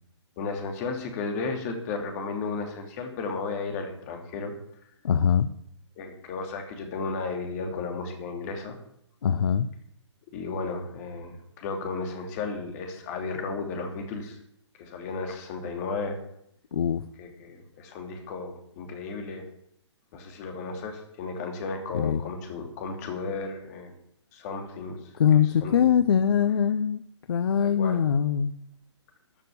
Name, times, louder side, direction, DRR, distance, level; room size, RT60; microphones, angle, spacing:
voice 1, 0.4-4.5 6.0-8.8 10.3-14.4 14.8-16.2 17.2-19.5 20.1-23.9 24.3-25.0 25.3-25.9 27.6-28.0, left 4 dB, 35° left, 4 dB, 2.8 m, -34 dB
voice 2, 5.0-5.5 9.2-9.7 16.7-17.0 21.9-22.2 25.2-27.0 27.3-28.5, left 8 dB, 55° left, 14 dB, 0.7 m, -22 dB
13.0 x 6.7 x 8.5 m, 0.73 s
figure-of-eight pair, 125°, 15 cm